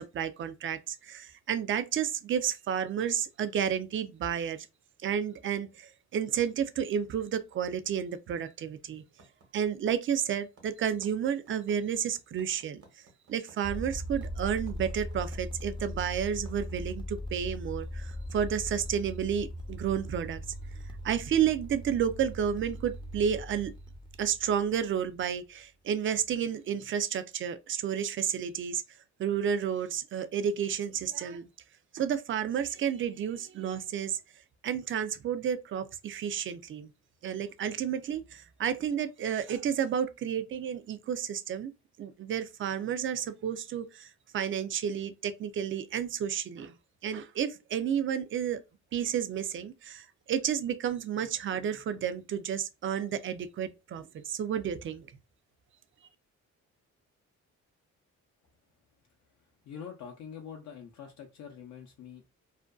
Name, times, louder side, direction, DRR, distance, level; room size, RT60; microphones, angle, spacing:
voice 1, 0.0-4.7 5.0-9.0 9.5-12.8 13.3-20.4 21.0-23.7 24.2-28.8 29.2-31.5 31.9-34.2 34.6-36.9 37.2-41.7 42.0-44.1 44.3-46.7 47.0-48.6 48.9-55.1, right 8 dB, 45° right, 0.4 m, -31 dB
sound 1, 9.2-16.9, right 3 dB, 65° right, 1.0 m, -57 dB
sound 2, 13.6-25.3, equal, 15° left, 0.4 m, -40 dB
voice 2, 59.7-62.2, left 7 dB, 65° left, 0.5 m, -45 dB
2.5 x 2.1 x 2.3 m
cardioid pair, 90°, 30 cm